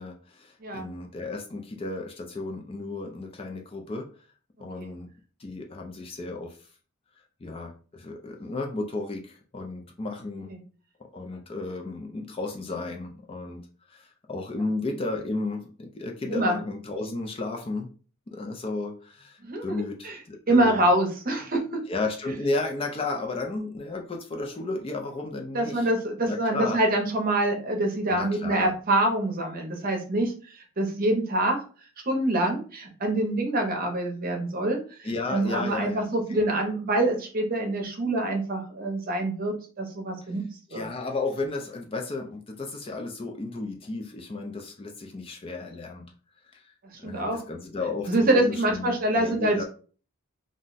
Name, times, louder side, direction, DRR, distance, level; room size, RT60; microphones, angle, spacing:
voice 1, 0.0-4.1 4.6-5.1 5.4-6.6 7.4-10.5 11.1-13.6 13.9-17.9 18.3-20.9 21.9-25.9 26.2-26.8 28.1-28.7 35.0-36.4 40.7-46.1 46.5-49.6, left 3 dB, 25° left, 2 dB, 0.3 m, -33 dB
voice 2, 19.5-20.2 20.5-21.8 25.5-31.6 32.0-40.4 40.7-40.9 47.0-47.4 48.1-49.6, right 1 dB, 40° right, 2 dB, 0.7 m, -25 dB
2.4 x 2.1 x 3.8 m, 0.39 s
head